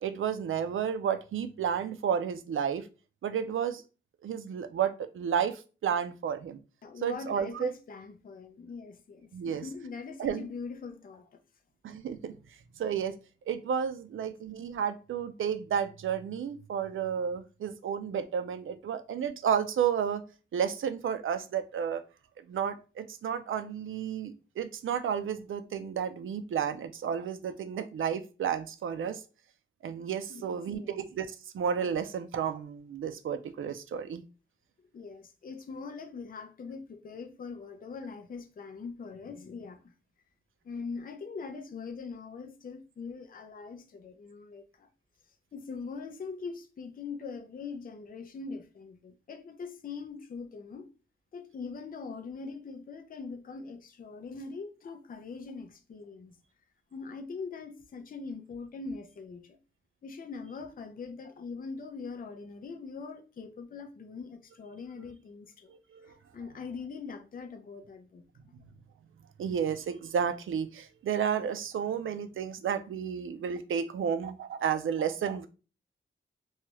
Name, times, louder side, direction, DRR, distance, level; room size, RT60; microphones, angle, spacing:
voice 1, 0.0-2.9 3.2-3.8 4.2-6.6 7.0-7.7 9.3-9.6 10.2-10.4 11.8-12.4 12.8-13.1 13.5-20.2 20.5-22.0 22.5-29.2 29.8-34.2 65.0-65.1 65.7-66.2 69.4-75.5, right 8 dB, 75° right, 0.4 m, -32 dB
voice 2, 6.8-11.4 30.3-31.0 34.9-39.9 40.6-44.9 45.5-50.9 51.3-56.4 56.9-59.6 60.0-65.7 66.3-68.2, left 4 dB, 45° left, 0.4 m, -42 dB
3.0 x 2.3 x 2.9 m
wide cardioid pair, 120°, 21 cm